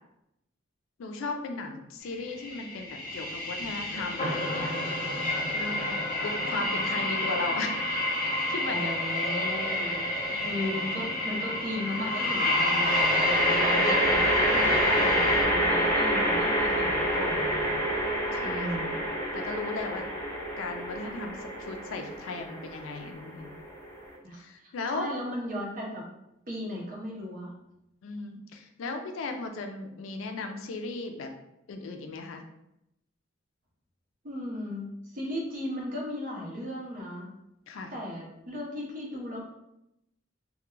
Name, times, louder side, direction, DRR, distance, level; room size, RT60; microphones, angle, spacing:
voice 1, 1.0-4.8 5.5-7.9 8.5-8.9 10.3-10.7 18.3-18.9 19.3-20.1 20.6-23.5 24.3-25.1 28.0-31.3 31.7-32.4 37.7-37.9, left 3 dB, 80° left, 5 dB, 0.4 m, -36 dB
sound 1, 2.3-15.4, left 1 dB, 45° left, 0.7 m, -29 dB
voice 2, 8.7-10.0 10.5-17.8 18.4-18.9 24.2-26.0 26.5-27.5 34.2-37.3 37.9-39.4, left 1 dB, 45° right, -2 dB, 0.7 m, -36 dB
sound 2, 9.7-10.3 12.8-24.1, equal, 10° left, 0.4 m, -28 dB
2.3 x 2.1 x 3.0 m, 0.83 s
head